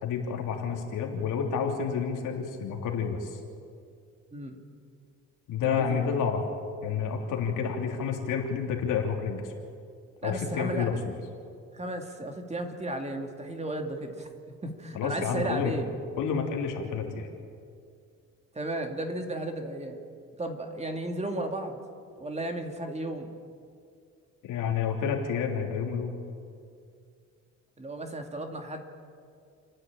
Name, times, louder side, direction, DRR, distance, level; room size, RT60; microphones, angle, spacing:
voice 1, 0.0-3.4 5.5-6.4 6.8-9.5 10.2-11.0 14.9-15.7 16.2-17.3 24.4-26.2, left 6 dB, 80° left, 2 dB, 3.2 m, -29 dB
voice 2, 5.6-6.1 10.2-11.0 11.7-14.3 14.6-15.9 18.5-20.0 20.4-21.8 22.2-23.3 27.8-28.8, right 1 dB, 20° right, 4 dB, 2.5 m, -34 dB
29.5 x 10.0 x 8.9 m, 2.3 s
cardioid pair, 95°, 31 cm